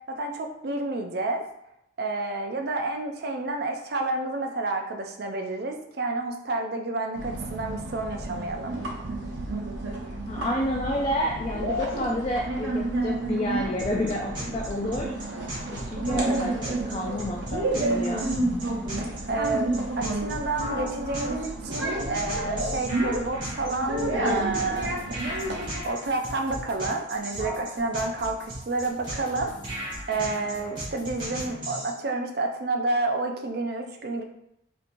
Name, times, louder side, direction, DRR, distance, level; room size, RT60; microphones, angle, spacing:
voice 1, 0.1-1.4 2.0-8.8 17.8-18.4 19.3-24.9 25.8-34.2, right 2 dB, 55° right, 3 dB, 0.5 m, -30 dB
sound 1, 7.2-25.8, right 2 dB, 85° right, 0.8 m, -31 dB
voice 2, 10.3-15.1 15.7-18.3, left 1 dB, 30° left, -2 dB, 0.3 m, -30 dB
sound 2, 13.8-31.9, right 1 dB, 25° right, 1.1 m, -36 dB
sound 3, 24.7-31.5, left 1 dB, 70° left, 1.0 m, -45 dB
4.3 x 2.7 x 2.6 m, 0.79 s
head